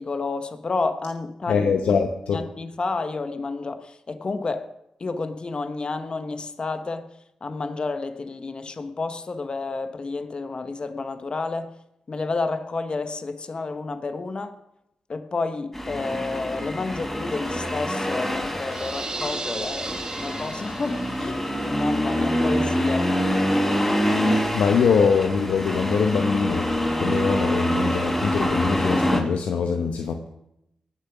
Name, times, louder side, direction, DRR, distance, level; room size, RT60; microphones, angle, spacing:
voice 1, 0.0-1.9 2.3-4.7 5.0-7.1 7.4-11.7 12.1-14.5 15.1-23.1, left 3 dB, 50° left, 10 dB, 1.1 m, -30 dB
voice 2, 1.5-2.4 24.3-30.3, left 6 dB, 85° left, 5 dB, 0.9 m, -23 dB
Accelerating revving vroom, 15.7-29.2, equal, 15° left, 4.3 m, -25 dB
sound 1, 18.7-21.2, right 3 dB, 35° right, 1.7 m, -34 dB
18.5 x 7.0 x 6.1 m, 0.83 s
cardioid pair, 50°, 2 cm